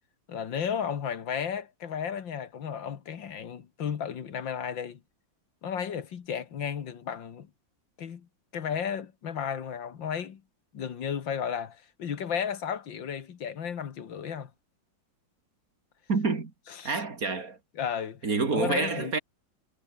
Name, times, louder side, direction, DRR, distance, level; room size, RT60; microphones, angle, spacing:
voice 1, 0.3-5.0 5.6-7.5 8.0-10.4 10.7-14.5 16.7-17.0 17.8-18.2 18.5-19.2, left 7 dB, 75° left, 2.3 m, -34 dB
voice 2, 16.1-16.5 16.8-17.6 18.2-19.2, right 4 dB, 50° right, 3.0 m, -28 dB
omnidirectional pair, 2.0 m